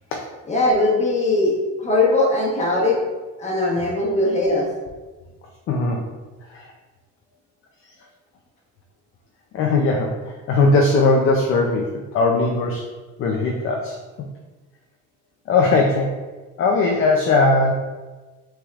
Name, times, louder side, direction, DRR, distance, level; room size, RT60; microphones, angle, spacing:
voice 1, 0.5-3.0 3.4-4.7, left 2 dB, 20° left, -4 dB, 1.0 m, -20 dB
voice 2, 5.7-6.0 6.5-6.7 9.5-10.2 10.5-12.9 13.2-14.0 15.5-16.2 16.6-17.7, left 3 dB, 35° left, 1 dB, 0.4 m, -19 dB
5.9 x 3.5 x 2.3 m, 1.3 s
cardioid pair, 170°, 38 cm